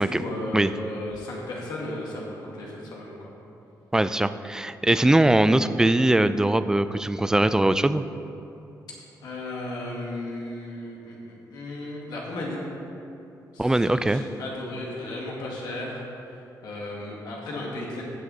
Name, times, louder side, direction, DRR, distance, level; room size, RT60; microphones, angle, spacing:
voice 1, 0.0-3.2 9.2-12.6 13.5-16.0 16.6-18.0, left 1 dB, 85° left, -3 dB, 2.1 m, -35 dB
voice 2, 3.9-8.0 13.6-14.2, right 1 dB, 10° right, 12 dB, 0.3 m, -21 dB
15.0 x 6.4 x 4.0 m, 2.8 s
cardioid pair, 95°, 7 cm